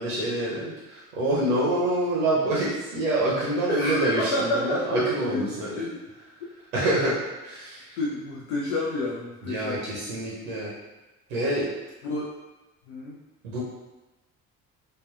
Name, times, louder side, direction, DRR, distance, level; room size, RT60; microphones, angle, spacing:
voice 1, 0.0-5.9 6.7-7.2 7.4-8.0 9.4-10.7 11.3-11.7 13.4-13.6, right 1 dB, 80° right, -6 dB, 0.7 m, -26 dB
voice 2, 3.7-6.0 6.4-6.5 8.0-9.8 12.0-12.3 12.9-13.2, left 1 dB, 70° left, -4 dB, 0.6 m, -29 dB
3.3 x 2.2 x 2.3 m, 1.1 s
figure-of-eight pair, 50°, 43 cm